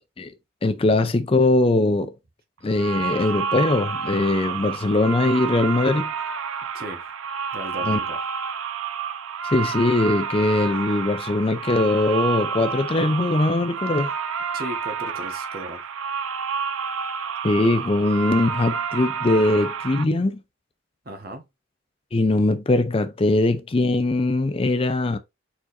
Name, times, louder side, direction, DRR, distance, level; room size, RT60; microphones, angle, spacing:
voice 1, 0.6-2.1 2.6-6.1 7.9-8.0 9.4-14.1 17.4-20.4 22.1-25.2, left 2 dB, 25° left, 0.4 m, -21 dB
sound 1, 2.7-20.1, right 6 dB, 85° right, 0.5 m, -29 dB
voice 2, 7.5-8.2 14.5-15.8 21.0-21.5, right 1 dB, 45° right, 1.1 m, -36 dB
4.6 x 4.3 x 2.5 m
head